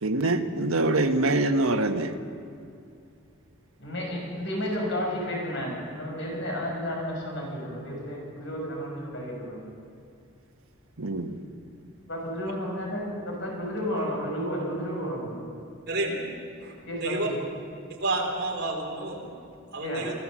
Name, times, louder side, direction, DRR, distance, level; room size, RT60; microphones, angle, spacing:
voice 1, 0.0-2.1 11.0-11.4, right 2 dB, 80° right, 6 dB, 1.4 m, -24 dB
voice 2, 3.8-9.6 11.4-11.5 12.1-15.5 16.8-17.4 19.8-20.1, equal, 55° left, -1 dB, 5.8 m, -32 dB
voice 3, 15.9-16.2 16.6-16.7 17.0-17.3 18.0-19.2 19.7-20.1, right 2 dB, 50° right, -1 dB, 4.2 m, -29 dB
25.0 x 16.5 x 7.5 m, 2.4 s
head